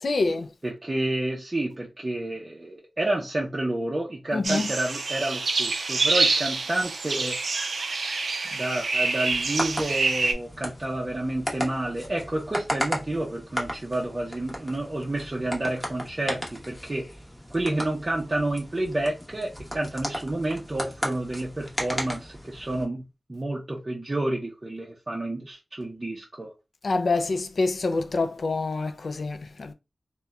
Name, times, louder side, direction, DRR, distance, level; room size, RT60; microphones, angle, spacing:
voice 1, 0.0-0.5 4.3-4.7 26.8-29.7, left 3 dB, 70° left, 0.3 m, -26 dB
voice 2, 0.6-7.4 8.5-17.1 17.5-23.0 23.3-26.5, right 1 dB, 30° right, 0.5 m, -29 dB
sound 1, 4.4-10.3, right 3 dB, 80° right, 0.3 m, -26 dB
sound 2, 9.3-22.8, equal, 15° left, 0.8 m, -35 dB
2.7 x 2.1 x 2.3 m
wide cardioid pair, 75°, 0 cm